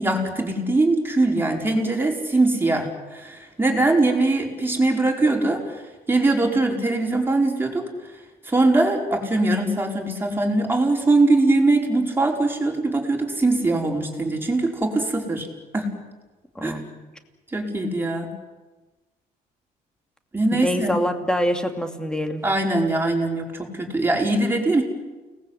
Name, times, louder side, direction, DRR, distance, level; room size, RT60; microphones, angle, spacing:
voice 1, 0.0-5.8 6.1-8.1 8.4-15.5 15.7-16.0 16.6-16.8 17.5-18.3 20.3-20.9 22.4-24.8, right 2 dB, 15° right, 0 dB, 5.2 m, -22 dB
voice 2, 16.5-16.9 20.5-22.4, equal, 5° left, 5 dB, 2.8 m, -25 dB
29.5 x 19.5 x 8.3 m, 1.2 s
cardioid pair, 110°, 17 cm